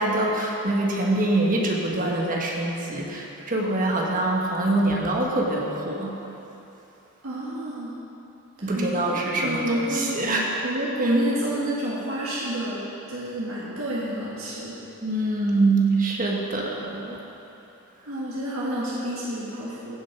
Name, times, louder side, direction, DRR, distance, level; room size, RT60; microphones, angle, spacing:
voice 1, 0.0-6.1 8.6-10.5 11.0-11.1 15.0-17.2, right 2 dB, 40° right, -1 dB, 1.4 m, -24 dB
voice 2, 7.2-7.9 8.6-10.2 10.6-12.8 13.1-14.7 18.0-20.0, right 1 dB, 90° right, -7 dB, 1.7 m, -28 dB
15.5 x 6.6 x 4.7 m, 2.9 s
head